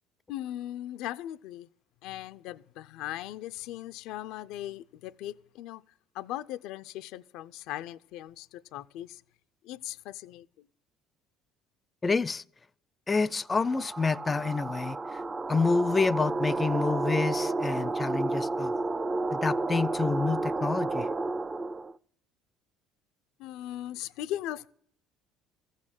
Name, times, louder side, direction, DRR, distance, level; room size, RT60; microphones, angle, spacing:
voice 1, 0.3-1.7 2.0-5.8 6.1-9.2 9.6-10.7 23.4-24.7, left 13 dB, 75° left, 0.5 m, -39 dB
voice 2, 12.0-12.4 13.1-15.2 15.5-18.7 19.3-21.1, left 4 dB, 25° left, 0.5 m, -28 dB
sound 1, 13.5-21.9, right 2 dB, 20° right, 0.5 m, -31 dB
14.5 x 6.5 x 9.0 m
supercardioid pair, 100°, 0 cm